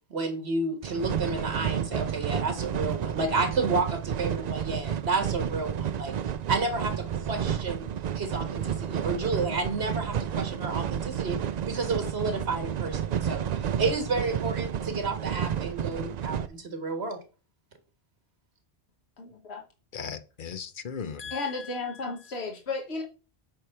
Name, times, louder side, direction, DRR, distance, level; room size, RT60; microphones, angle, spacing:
voice 1, 0.1-6.2 6.5-7.9 8.2-11.4 11.7-17.2, right 3 dB, 85° right, 1.7 m, -31 dB
sound 1, 0.8-16.5, right 9 dB, 55° right, 0.5 m, -31 dB
voice 2, 19.2-19.6 21.3-23.0, left 3 dB, 85° left, 1.5 m, -34 dB
voice 3, 19.9-22.0, left 6 dB, 55° left, 0.9 m, -38 dB
8.8 x 3.3 x 5.7 m
omnidirectional pair, 1.1 m